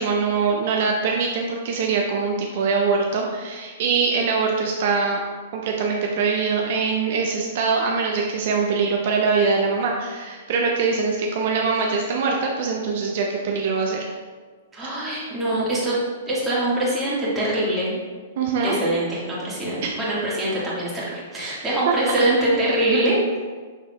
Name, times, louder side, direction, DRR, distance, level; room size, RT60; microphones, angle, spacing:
voice 1, 0.0-5.2 5.5-14.0 18.4-18.8 19.8-19.9 21.9-22.3, right 4 dB, 60° right, 0 dB, 0.5 m, -23 dB
voice 2, 14.7-16.0 16.3-18.0 18.6-23.4, right 1 dB, 15° right, -7 dB, 1.4 m, -23 dB
5.8 x 3.4 x 2.2 m, 1.5 s
hypercardioid pair, 130°, 0 cm